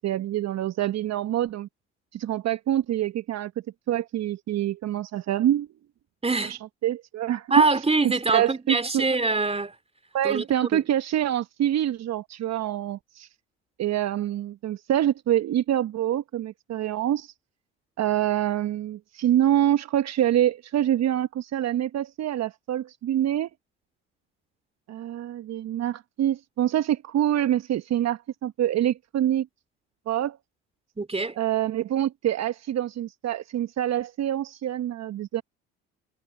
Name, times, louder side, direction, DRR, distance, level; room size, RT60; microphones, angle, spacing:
voice 1, 0.0-1.7 2.1-3.5 3.9-5.7 6.5-7.6 8.3-9.0 10.1-13.3 13.8-17.3 18.0-23.5 24.9-29.5 30.1-30.4 31.4-35.4, right 12 dB, 50° right, 1.2 m, -26 dB
voice 2, 6.2-6.6 7.5-9.7 10.2-10.8 31.0-31.4, right 3 dB, 15° right, 3.2 m, -24 dB
hypercardioid pair, 60°, 34 cm